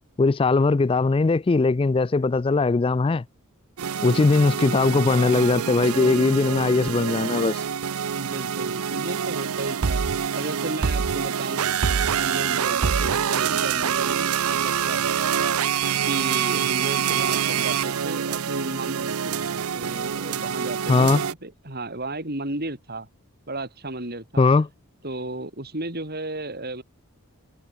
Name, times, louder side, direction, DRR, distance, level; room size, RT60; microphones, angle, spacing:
voice 1, 0.2-3.2 4.0-7.6 20.9-21.2 24.4-24.7, left 3 dB, 25° left, 0.3 m, -20 dB
sound 1, 3.8-21.3, right 7 dB, 85° right, 0.6 m, -26 dB
voice 2, 8.2-10.0 10.3-15.5 16.1-23.1 23.5-24.5 25.0-26.8, right 2 dB, 45° right, 5.8 m, -34 dB
head